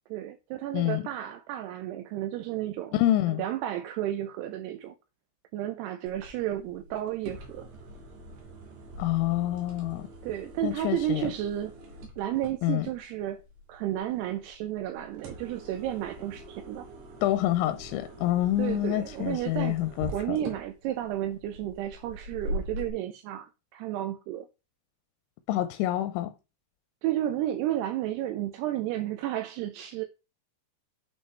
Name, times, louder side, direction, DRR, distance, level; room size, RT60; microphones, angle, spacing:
voice 1, 0.1-2.9 3.3-5.0 5.5-7.7 10.2-11.8 12.2-13.4 13.7-16.9 18.6-19.8 20.1-24.5 27.0-30.0, right 12 dB, 90° right, 2.3 m, -32 dB
voice 2, 2.9-3.4 9.0-10.1 10.6-11.3 12.6-12.9 17.2-20.4 25.5-26.3, left 14 dB, 90° left, 2.9 m, -27 dB
sound 1, 6.1-22.9, right 1 dB, 70° right, 3.8 m, -43 dB
8.2 x 5.6 x 3.3 m
omnidirectional pair, 5.3 m